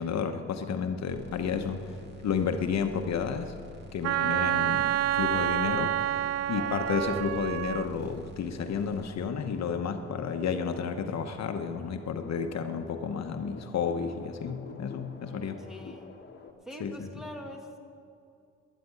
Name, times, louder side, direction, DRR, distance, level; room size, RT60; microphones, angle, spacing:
voice 1, 0.0-1.8 2.2-3.5 3.9-6.2 6.5-15.6 16.8-16.9, left 6 dB, 65° left, 6 dB, 1.0 m, -31 dB
sound 1, 1.1-9.1, equal, 35° right, 2.1 m, -48 dB
voice 2, 1.6-2.0 6.5-6.9 15.2-16.1 16.6-17.8, equal, ahead, 2 dB, 1.9 m, -45 dB
Wind instrument woodwind instrument, 4.0-7.9, right 12 dB, 55° right, 0.4 m, -28 dB
sound 2, 8.6-16.5, left 5 dB, 35° left, 1.5 m, -49 dB
12.0 x 10.0 x 9.7 m, 2.4 s
cardioid pair, 105°, 29 cm